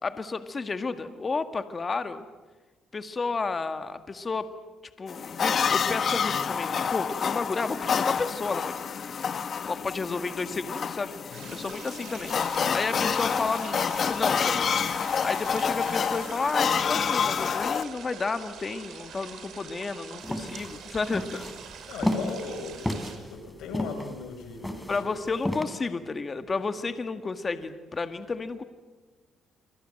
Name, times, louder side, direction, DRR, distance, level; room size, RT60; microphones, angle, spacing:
voice 1, 0.0-2.2 2.9-4.5 5.0-8.9 9.6-13.8 14.1-21.5 24.9-28.6, left 4 dB, 35° left, 9 dB, 1.9 m, -32 dB
sound 1, 5.1-17.8, left 6 dB, 50° left, 1.5 m, -28 dB
sound 2, 11.3-23.2, right 7 dB, 75° right, 6.0 m, -44 dB
sound 3, 20.2-25.6, left 1 dB, 5° left, 3.7 m, -31 dB
voice 2, 21.9-22.8 23.3-25.1, left 5 dB, 85° left, 8 dB, 4.7 m, -38 dB
28.0 x 25.5 x 7.8 m, 1.3 s
cardioid pair, 90°, 0 cm